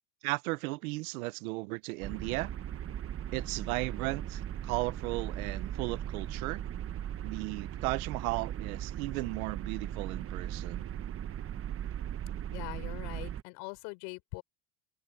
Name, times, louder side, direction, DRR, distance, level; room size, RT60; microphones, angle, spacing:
voice 1, 0.2-2.5 3.3-6.6 7.2-11.0, right 23 dB, 75° right, 1.1 m, -35 dB
sound 1, 2.0-13.4, right 10 dB, 30° right, 1.0 m, -38 dB
voice 2, 12.5-14.4, left 34 dB, 70° left, 5.8 m, -42 dB
supercardioid pair, 110°, 42 cm